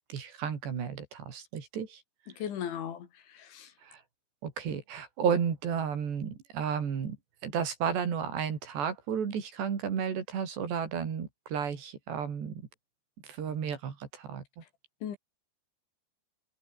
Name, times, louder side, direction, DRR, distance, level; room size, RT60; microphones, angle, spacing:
voice 1, 0.1-2.0 3.8-4.0 4.4-7.2 7.4-12.6 13.3-14.4, right 7 dB, 70° right, 6.0 m, -33 dB
voice 2, 2.3-3.7 15.0-15.2, left 9 dB, 90° left, 5.5 m, -38 dB
omnidirectional pair, 5.2 m